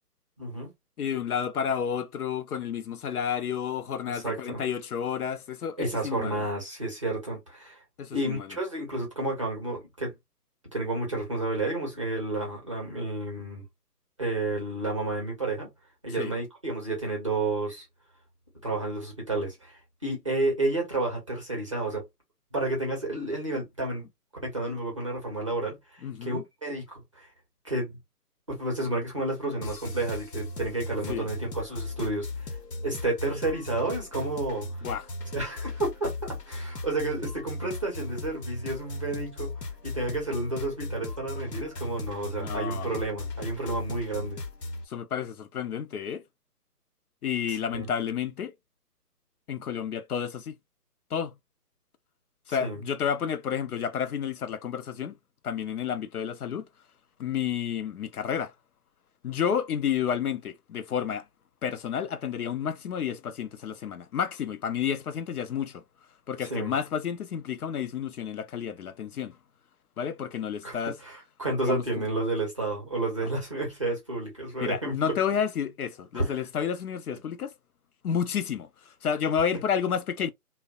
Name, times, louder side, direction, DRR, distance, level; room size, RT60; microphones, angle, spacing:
voice 1, 0.4-0.7 4.1-4.7 5.8-7.8 8.1-10.1 10.7-13.6 14.2-15.7 16.0-17.8 18.6-22.0 22.5-24.1 24.4-27.3 27.6-28.0 28.5-32.5 32.8-34.9 35.3-44.4 47.5-47.8 52.5-52.8 66.4-66.7 70.6-75.2 76.1-76.3 79.5-79.6, right 2 dB, 20° right, 0.6 m, -31 dB
voice 2, 1.0-6.4 8.0-8.5 16.2-16.3 26.0-26.4 31.1-31.3 34.8-35.1 42.4-42.9 44.9-46.2 47.2-48.5 49.5-50.5 51.1-51.3 52.5-55.1 55.4-56.6 57.2-58.5 59.2-61.2 61.6-65.8 66.3-69.4 70.0-71.0 71.6-72.0 74.6-77.5 78.0-80.3, left 8 dB, 70° left, 0.5 m, -30 dB
sound 1, 29.6-44.9, left 2 dB, 85° left, 0.9 m, -37 dB
2.6 x 2.0 x 2.3 m
figure-of-eight pair, 150°, 47 cm